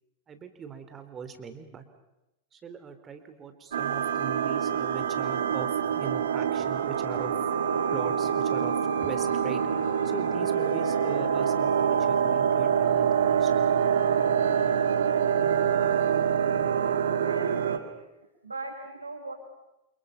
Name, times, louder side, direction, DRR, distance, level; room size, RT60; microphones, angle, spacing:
voice 1, 0.3-1.8 2.5-7.3 7.9-13.5, right 6 dB, 25° right, 8 dB, 3.6 m, -40 dB
sound 1, 3.7-17.8, right 7 dB, 65° right, 1.8 m, -25 dB
voice 2, 16.4-18.1 18.4-19.3, right 3 dB, 80° right, 2 dB, 5.8 m, -41 dB
29.0 x 29.0 x 5.8 m, 0.94 s
figure-of-eight pair, 90°, 0 cm